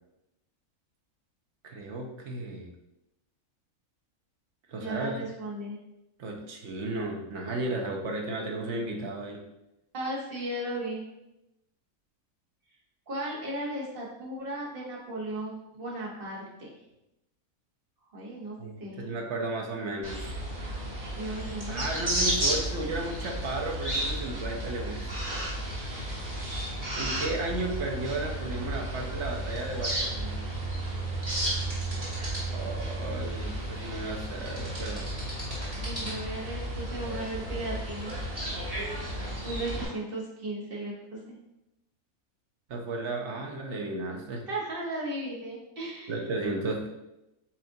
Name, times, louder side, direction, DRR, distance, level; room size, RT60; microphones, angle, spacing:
voice 1, 1.6-2.7 4.7-5.2 6.2-9.4 18.6-20.3 21.7-25.1 26.9-30.4 32.5-35.1 42.7-44.4 46.1-46.9, right 2 dB, 60° right, 1 dB, 0.8 m, -34 dB
voice 2, 4.8-5.8 9.9-11.0 13.1-16.7 18.1-19.1 21.2-21.8 25.9-26.0 35.8-38.1 39.4-41.3 44.5-46.1, right 1 dB, 45° right, -4 dB, 1.1 m, -36 dB
sound 1, 20.0-39.8, right 1 dB, 25° right, 1.2 m, -33 dB
7.2 x 2.4 x 2.6 m, 0.92 s
omnidirectional pair, 1.5 m